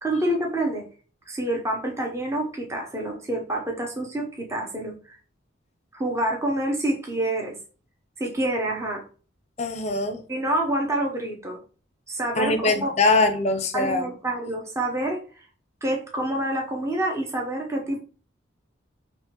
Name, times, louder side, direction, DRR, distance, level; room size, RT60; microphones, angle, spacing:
voice 1, 0.0-0.8 1.3-5.2 5.9-7.5 8.2-9.0 10.3-11.6 12.1-12.9 13.7-15.4 15.8-18.0, right 1 dB, 15° right, 0.7 m, -27 dB
voice 2, 9.6-10.2 12.4-14.1, left 3 dB, 35° left, 0.6 m, -22 dB
5.4 x 2.9 x 3.0 m
head